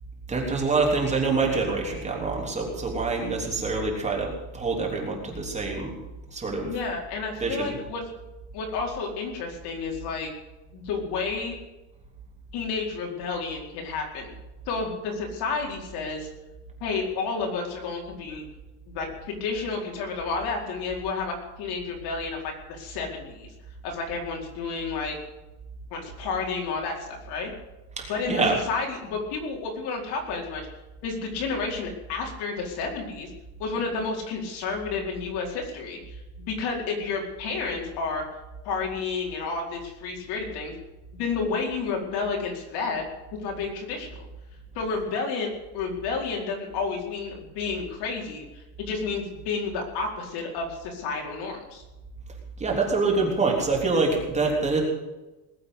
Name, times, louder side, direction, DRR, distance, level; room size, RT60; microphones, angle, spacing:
voice 1, 0.3-5.9 6.3-6.7 7.4-7.7 28.0-28.6 52.6-54.8, right 3 dB, 15° right, -1 dB, 3.6 m, -25 dB
voice 2, 6.6-8.0 8.5-10.3 10.7-11.6 12.5-14.3 14.7-16.3 16.8-18.4 18.9-23.5 23.8-25.2 25.9-27.5 28.1-30.6 31.0-33.3 33.6-38.2 38.6-40.7 41.1-43.0 43.3-44.3 44.7-45.5 45.7-51.8, left 4 dB, 55° left, 1 dB, 4.8 m, -31 dB
20.5 x 8.5 x 8.1 m, 1.0 s
cardioid pair, 165°, 46 cm